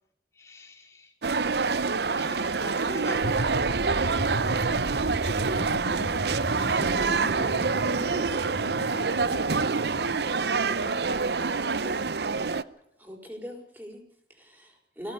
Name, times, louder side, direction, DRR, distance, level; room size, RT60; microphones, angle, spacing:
voice 1, 0.4-1.1 1.6-1.8 2.0-3.5, left 1 dB, 15° left, -1 dB, 4.6 m, -43 dB
sound 1, 1.2-12.6, right 4 dB, 65° right, 0.7 m, -26 dB
sound 2, 3.1-12.0, equal, 65° left, 3.8 m, -36 dB
voice 2, 8.8-11.9 12.2-12.4, left 1 dB, 85° left, -3 dB, 4.3 m, -46 dB
voice 3, 13.0-15.1, equal, 10° right, 2 dB, 5.5 m, -42 dB
22.0 x 17.5 x 6.9 m, 0.69 s
head